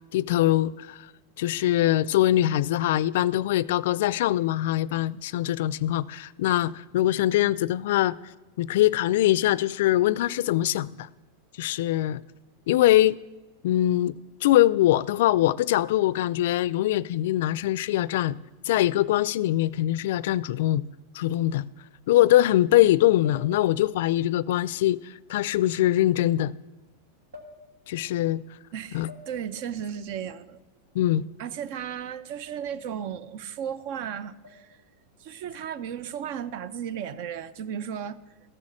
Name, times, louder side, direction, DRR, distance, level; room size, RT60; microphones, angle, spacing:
voice 1, 0.1-1.1 1.4-8.1 8.6-11.1 11.6-12.2 12.7-13.2 13.6-14.1 14.4-18.4 18.7-20.8 21.1-21.6 22.1-25.0 25.3-26.5 27.9-28.4 28.9-29.1 30.9-31.2, left 14 dB, 70° left, 0.3 m, -22 dB
sound 1, 20.2-20.6 21.8-21.9 23.2-24.0 25.6-25.8 27.3-28.0 29.1-29.7 32.5-33.0 34.4-34.9 36.3-36.7, left 3 dB, 85° right, 2.3 m, -50 dB
voice 2, 28.7-30.6 31.4-34.7 35.2-38.2, right 8 dB, 60° right, 0.7 m, -35 dB
13.5 x 6.3 x 7.4 m
hypercardioid pair, 115°, 0 cm